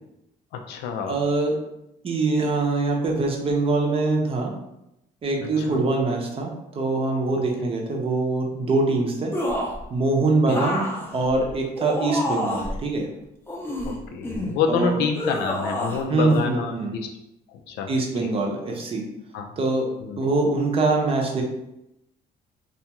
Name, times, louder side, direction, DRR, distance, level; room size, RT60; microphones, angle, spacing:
voice 1, 0.5-1.2 5.6-5.8 10.5-10.6 13.8-17.1 17.7-17.9 18.2-18.3 19.3-19.5 20.0-20.2, left 5 dB, 80° left, 4 dB, 0.4 m, -27 dB
voice 2, 1.1-1.6 2.0-4.5 5.2-9.3 9.9-13.1 14.7-15.0 16.1-16.9 17.9-19.0 19.6-19.9 20.2-21.4, right 3 dB, 35° right, 0 dB, 0.6 m, -23 dB
sound 1, 9.3-9.8 10.5-12.8 13.5-14.6 15.1-16.0 16.3-16.4, left 1 dB, 15° left, 0.5 m, -28 dB
2.4 x 2.3 x 2.9 m, 0.85 s
cardioid pair, 110°, 17 cm